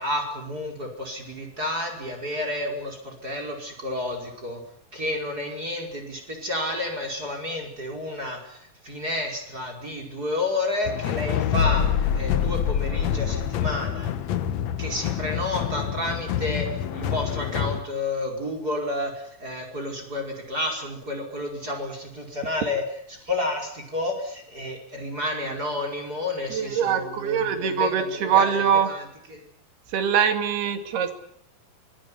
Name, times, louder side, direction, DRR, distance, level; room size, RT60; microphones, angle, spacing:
voice 1, 0.0-4.6 4.9-14.1 14.8-22.8 23.1-29.4, left 1 dB, 25° right, 3 dB, 5.4 m, -31 dB
sound 1, 10.9-17.8, left 9 dB, 65° left, 1.8 m, -26 dB
voice 2, 26.5-28.9 29.9-31.1, right 7 dB, 85° right, 8 dB, 4.3 m, -23 dB
24.5 x 17.0 x 9.8 m, 0.66 s
omnidirectional pair, 4.4 m